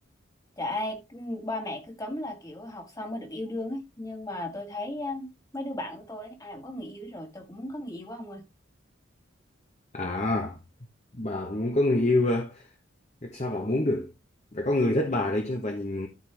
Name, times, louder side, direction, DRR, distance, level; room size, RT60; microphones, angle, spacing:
voice 1, 0.6-8.4, left 1 dB, 20° left, 1.7 m, -36 dB
voice 2, 9.9-10.6 11.2-12.7 13.2-14.1 14.5-16.1, left 2 dB, 35° left, 1.1 m, -26 dB
13.0 x 4.5 x 3.4 m
head